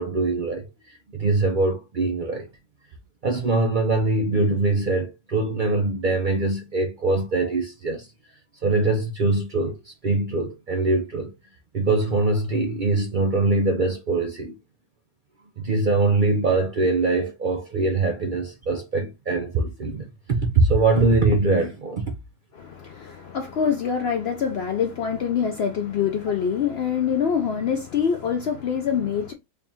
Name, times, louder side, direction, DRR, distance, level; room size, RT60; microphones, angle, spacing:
voice 1, 0.0-2.5 3.2-8.1 8.6-11.3 11.7-14.6 15.6-22.1, right 3 dB, 60° right, 0.5 m, -23 dB
voice 2, 22.5-29.3, left 7 dB, 75° left, 0.5 m, -25 dB
3.5 x 2.4 x 4.0 m
omnidirectional pair, 1.6 m